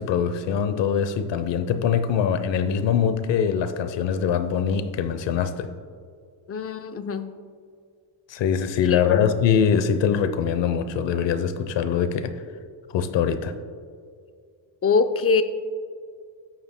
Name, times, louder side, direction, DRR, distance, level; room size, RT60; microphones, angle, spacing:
voice 1, 0.0-5.7 8.3-12.3 12.9-13.5, left 7 dB, 70° left, 11 dB, 0.8 m, -23 dB
voice 2, 6.5-7.3 8.8-9.2 14.8-15.4, left 5 dB, 30° left, 10 dB, 0.5 m, -23 dB
13.5 x 9.3 x 2.2 m, 2.1 s
cardioid pair, 100°, 46 cm